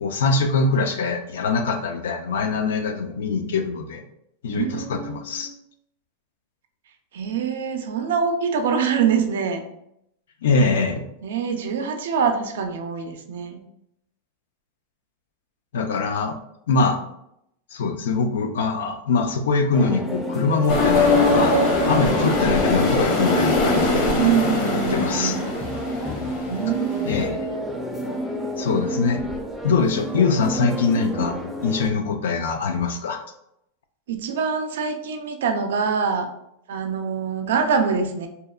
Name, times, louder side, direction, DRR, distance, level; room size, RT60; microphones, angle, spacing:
voice 1, 0.0-4.0 4.4-5.5 10.4-11.0 15.7-16.4 16.7-17.0 17.7-21.6 21.9-24.2 24.9-25.3 27.1-27.5 28.6-29.2 29.6-33.2, left 4 dB, 90° left, 6 dB, 0.3 m, -23 dB
voice 2, 4.5-5.5 7.1-9.6 11.2-13.6 24.2-25.4 26.5-27.6 34.1-36.3 36.7-38.3, right 6 dB, 85° right, 6 dB, 0.3 m, -24 dB
sound 1, 19.7-31.9, right 1 dB, 5° left, 0.3 m, -30 dB
sound 2, 20.7-27.3, left 2 dB, 55° left, 0.6 m, -22 dB
2.7 x 2.1 x 2.3 m, 0.78 s
supercardioid pair, 145°, 0 cm